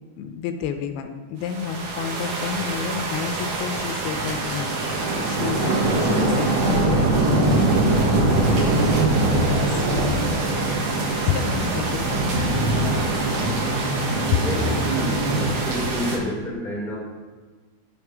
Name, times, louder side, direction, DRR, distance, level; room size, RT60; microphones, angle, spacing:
voice 1, 0.2-4.8 5.0-8.9 9.3-10.7 11.3-12.9 14.3-14.4, left 7 dB, 85° left, 7 dB, 2.5 m, -30 dB
sound 1, 1.5-16.2, right 2 dB, 65° right, 1.7 m, -22 dB
voice 2, 14.4-17.0, equal, ahead, -5 dB, 2.1 m, -29 dB
12.0 x 5.4 x 4.7 m, 1.4 s
omnidirectional pair, 4.4 m